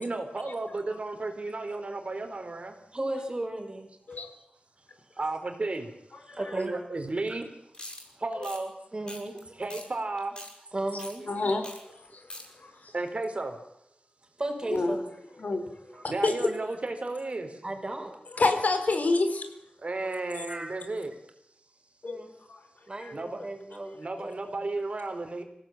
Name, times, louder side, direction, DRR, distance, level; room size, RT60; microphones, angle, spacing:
voice 1, 0.0-2.8 5.2-5.9 6.5-7.5 8.2-8.7 9.3-10.7 12.9-13.6 15.9-17.6 19.8-21.1 23.1-23.4 23.9-25.4, right 2 dB, 50° right, 6 dB, 3.8 m, -33 dB
voice 2, 2.9-3.9 6.3-6.8 8.9-9.4 10.7-11.3 14.4-15.1 17.6-18.1 20.5-20.7 22.0-22.3 22.9-23.9 24.2-24.3, right 1 dB, 30° right, 3 dB, 5.8 m, -34 dB
sound 1, 7.7-8.0 8.4-8.6 9.1-9.4 9.7-9.8 10.2-10.5 11.0-11.1 11.6-11.8 12.0-12.4, left 1 dB, 30° left, 7.6 m, -42 dB
voice 3, 11.3-11.7 12.1-12.2 12.5-12.9 14.7-15.0 15.4-16.5 18.3-19.5 20.3-20.5 22.0-22.2 22.5-22.6 23.0-23.1 23.8-24.3, left 3 dB, 70° left, 8 dB, 4.2 m, -29 dB
26.5 x 17.0 x 9.0 m, 0.80 s
wide cardioid pair, 95°, 3 cm